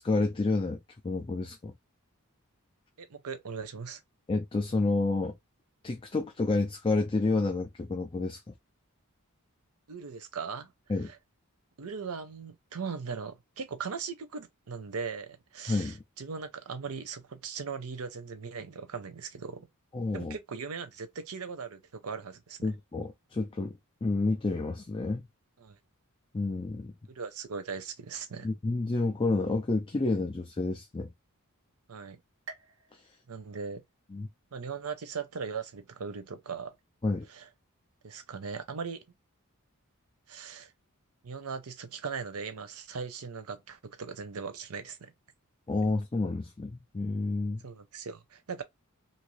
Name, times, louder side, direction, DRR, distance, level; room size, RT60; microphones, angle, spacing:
voice 1, 0.0-1.7 4.3-5.4 5.8-8.5 10.9-11.1 15.7-16.0 19.9-20.4 22.6-25.2 26.3-26.9 28.4-31.1 34.1-34.3 37.0-37.2 45.7-47.6, left 3 dB, 25° left, 0.4 m, -29 dB
voice 2, 3.0-4.0 9.9-10.7 11.0-11.2 11.8-19.7 20.1-22.7 25.6-25.8 27.1-28.5 31.9-32.2 33.3-33.8 34.5-36.7 37.3-37.5 38.0-39.0 40.3-40.7 41.2-45.1 47.6-48.6, right 5 dB, 75° right, 0.6 m, -39 dB
sound 1, 32.5-34.2 34.6-35.2 35.7-35.8 36.8-36.9, right 4 dB, 60° right, 1.1 m, -51 dB
2.8 x 2.6 x 3.1 m
head